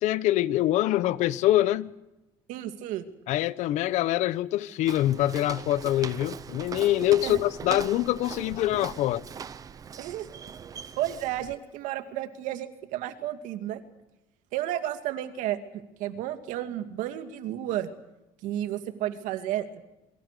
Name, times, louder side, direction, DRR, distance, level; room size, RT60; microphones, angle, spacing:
voice 1, 0.0-1.9 3.3-9.2, left 14 dB, 65° left, 1.0 m, -25 dB
voice 2, 2.5-3.0 7.2-7.4 10.0-10.3 11.0-13.8 14.5-17.9 18.4-19.8, right 12 dB, 75° right, 2.3 m, -32 dB
Walk footsteps, 4.9-11.6, right 7 dB, 25° right, 0.8 m, -40 dB
28.5 x 23.5 x 6.8 m
cardioid pair, 155°, 13 cm